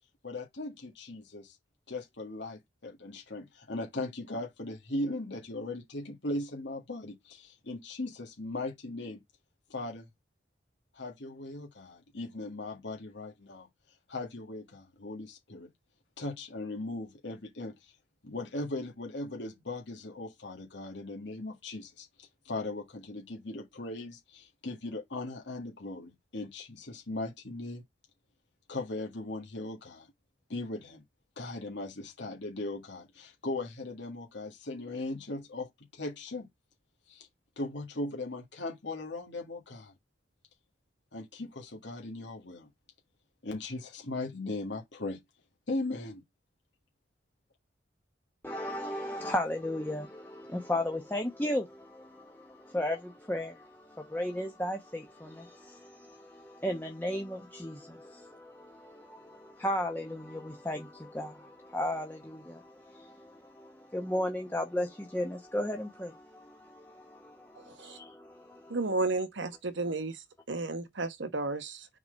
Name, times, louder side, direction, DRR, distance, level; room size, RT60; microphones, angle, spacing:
voice 1, 0.2-1.6 1.9-9.2 9.7-10.1 10.9-13.7 14.1-15.7 16.2-17.9 18.2-27.8 28.7-30.1 30.5-31.0 31.4-36.5 37.1-37.3 37.6-39.9 41.1-42.7 43.4-45.2 45.7-46.2, left 2 dB, 75° left, 1.7 m, -38 dB
voice 2, 48.4-68.8, left 1 dB, 10° left, 0.9 m, -35 dB
voice 3, 67.5-68.0 68.7-71.9, right 3 dB, 85° right, 1.1 m, -33 dB
5.9 x 3.9 x 5.1 m
head